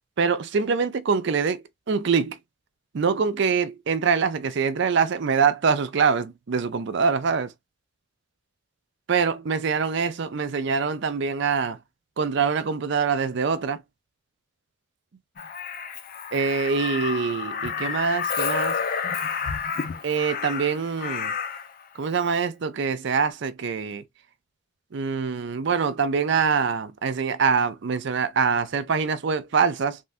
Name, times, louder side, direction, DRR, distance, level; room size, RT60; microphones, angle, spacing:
voice 1, 0.2-2.4 2.9-7.5 9.1-11.8 12.2-13.8 16.3-18.8 20.0-21.3 21.9-24.0 24.9-30.0, right 5 dB, 55° right, 0.4 m, -24 dB
Crow, 15.4-21.7 23.1-23.3, left 6 dB, 45° left, 0.4 m, -30 dB
3.6 x 2.1 x 2.6 m
head